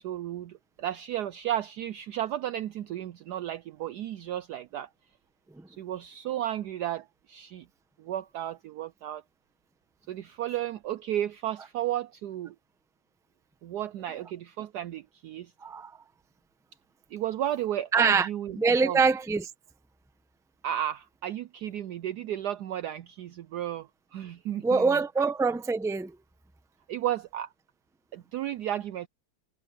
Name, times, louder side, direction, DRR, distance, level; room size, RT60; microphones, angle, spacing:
voice 1, 0.0-4.9 5.7-7.6 8.0-9.2 10.1-12.5 13.6-15.5 17.1-19.0 20.6-25.0 26.9-27.5 28.1-29.1, right 12 dB, 90° right, 0.8 m, -33 dB
voice 2, 17.9-18.3 18.6-19.5 24.6-26.2, right 4 dB, 5° right, 0.5 m, -24 dB
omnidirectional pair, 2.3 m